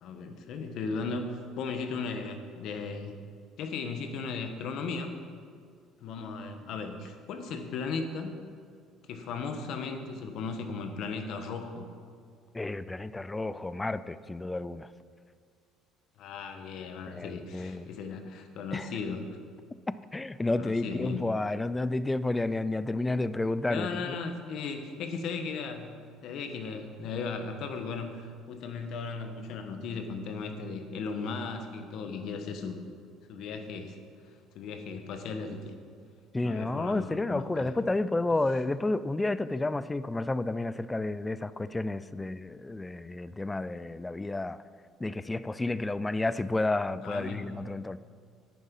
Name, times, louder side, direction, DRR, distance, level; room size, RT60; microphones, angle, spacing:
voice 1, 0.0-3.1 3.6-5.1 6.0-8.4 9.1-11.9 16.2-19.3 20.5-21.2 23.7-25.9 26.2-32.8 33.3-34.0 34.5-35.7 36.4-37.7 47.0-47.5, left 4 dB, 65° left, 6 dB, 1.3 m, -36 dB
voice 2, 12.5-14.9 17.1-17.9 18.7-18.9 19.9-24.2 36.3-44.6 45.0-48.0, left 2 dB, 15° left, 15 dB, 0.4 m, -31 dB
10.0 x 9.3 x 5.3 m, 2.1 s
supercardioid pair, 100°, 0 cm